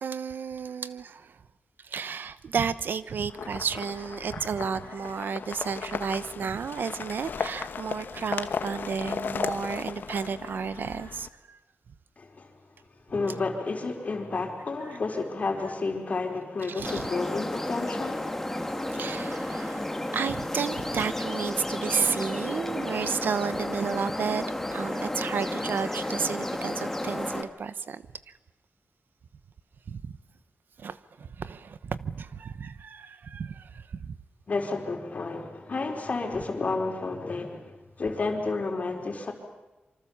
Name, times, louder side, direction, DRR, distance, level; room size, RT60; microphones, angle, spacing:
voice 1, 0.0-1.4 1.8-11.6 16.7-17.1 18.9-24.4 24.7-28.4 29.9-30.1 30.8-34.2, right 6 dB, 75° right, 1.0 m, -32 dB
sound 1, 3.3-11.3, left 6 dB, 75° left, 1.1 m, -36 dB
voice 2, 12.2-12.5 13.1-18.3 34.5-39.3, left 3 dB, 45° left, 4.3 m, -31 dB
sound 2, 16.8-27.4, left 1 dB, 10° left, 2.0 m, -32 dB
26.5 x 25.0 x 7.2 m
wide cardioid pair, 125°, 3 cm